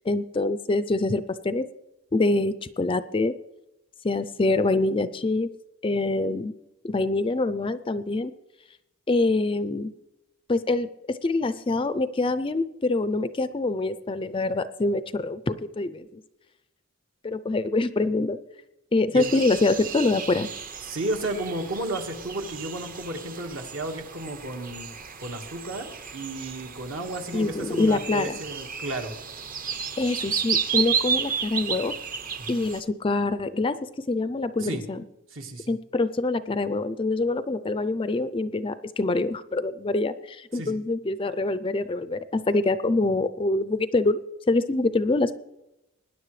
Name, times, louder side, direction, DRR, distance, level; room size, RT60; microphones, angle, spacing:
voice 1, 0.1-1.7 2.1-3.3 4.0-5.5 5.8-6.5 6.8-8.3 9.1-9.9 10.5-16.2 17.2-18.4 18.9-20.5 27.3-28.4 30.0-31.9 32.5-33.8 34.1-35.0 35.7-45.3, left 2 dB, 25° left, 13 dB, 0.4 m, -25 dB
sound 1, 19.2-32.8, right 7 dB, 40° right, 0.8 m, -33 dB
voice 2, 20.9-24.9 25.2-29.1 32.4-32.6 34.6-34.8 35.3-35.7 40.5-40.8, right 2 dB, 65° right, 4 dB, 1.6 m, -33 dB
20.5 x 10.0 x 3.2 m, 0.92 s
head